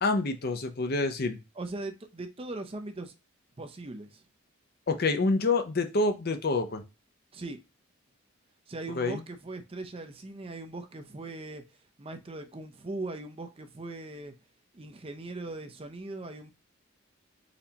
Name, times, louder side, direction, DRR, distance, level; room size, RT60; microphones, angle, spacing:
voice 1, 0.0-1.4 4.9-6.8 9.0-9.2, left 3 dB, 45° left, 0.6 m, -27 dB
voice 2, 1.6-3.1 3.6-4.2 7.3-7.6 8.7-11.6 12.0-14.3 14.7-16.5, right 2 dB, 25° right, 0.5 m, -39 dB
4.2 x 4.1 x 2.8 m
head